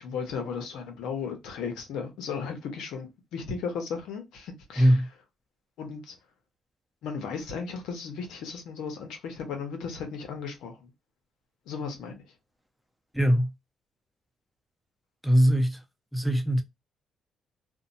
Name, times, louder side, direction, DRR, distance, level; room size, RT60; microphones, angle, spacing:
voice 1, 0.0-5.0 5.8-6.2 7.0-10.9 11.7-12.3, left 5 dB, 90° left, 0.9 m, -35 dB
voice 2, 4.8-5.1 13.1-13.5 15.2-15.8 16.1-16.6, equal, ahead, 0.6 m, -21 dB
2.7 x 2.2 x 2.6 m
cardioid pair, 90°, 0 cm